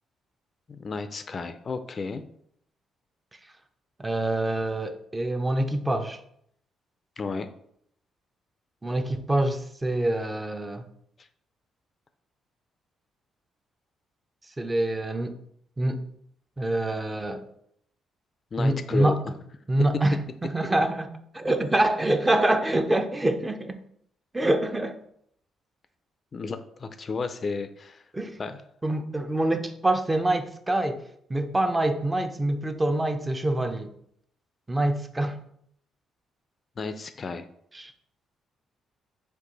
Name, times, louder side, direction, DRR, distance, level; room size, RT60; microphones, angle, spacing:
voice 1, 0.7-2.2 7.2-7.5 18.5-19.3 26.3-28.0 28.4-28.6 36.8-37.5, left 4 dB, 40° left, 10 dB, 0.4 m, -32 dB
voice 2, 4.0-6.2 8.8-10.8 14.6-15.3 15.8-16.0 16.6-17.5 18.6-19.2 19.7-21.1 21.3-23.8 24.3-25.0 28.1-28.4 28.8-31.0 31.3-33.9 34.7-35.4 37.7-37.9, right 1 dB, 15° right, 8 dB, 0.5 m, -25 dB
4.5 x 2.6 x 3.9 m, 0.69 s
cardioid pair, 90°, 0 cm